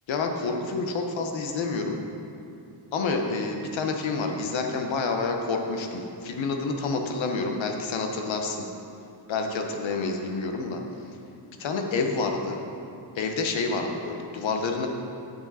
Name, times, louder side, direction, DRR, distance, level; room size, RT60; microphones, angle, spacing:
voice 1, 0.1-2.0 2.9-8.7 9.3-10.8 11.6-12.6 13.1-14.9, left 4 dB, 85° left, 4 dB, 1.0 m, -28 dB
8.7 x 6.6 x 4.1 m, 2.6 s
wide cardioid pair, 115°, 45 cm